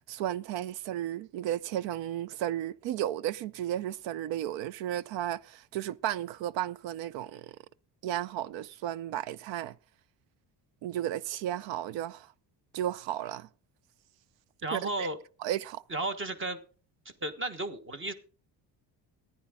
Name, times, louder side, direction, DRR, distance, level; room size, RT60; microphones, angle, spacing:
voice 1, 0.1-7.6 8.0-9.7 10.8-12.3 12.7-13.5 14.7-15.1 15.4-15.8, right 12 dB, 85° right, 0.7 m, -34 dB
voice 2, 14.6-15.2 15.9-16.6 17.2-18.1, right 2 dB, 30° right, 1.3 m, -33 dB
14.5 x 10.0 x 3.7 m
cardioid pair, 125°, 43 cm